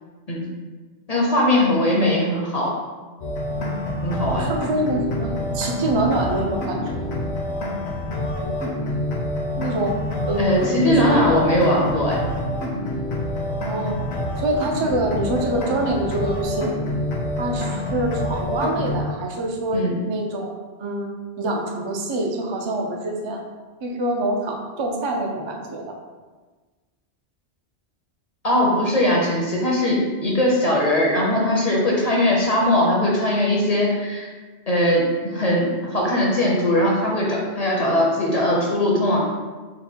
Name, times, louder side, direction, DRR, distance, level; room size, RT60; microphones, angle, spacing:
voice 1, 1.1-2.7 4.0-4.5 10.4-12.2 19.7-20.0 28.4-34.3 34.7-35.7 35.9-39.2, left 1 dB, 40° left, -3 dB, 0.6 m, -20 dB
sound 1, 3.2-19.0, left 1 dB, 70° left, 1.0 m, -27 dB
voice 2, 4.5-7.1 9.5-10.0 10.3-10.5 10.8-11.2 13.6-14.0 14.4-16.7 17.4-20.5 20.8-23.4 23.8-25.9, right 1 dB, 50° right, 0 dB, 0.3 m, -25 dB
3.9 x 2.1 x 4.4 m, 1.4 s
omnidirectional pair, 1.2 m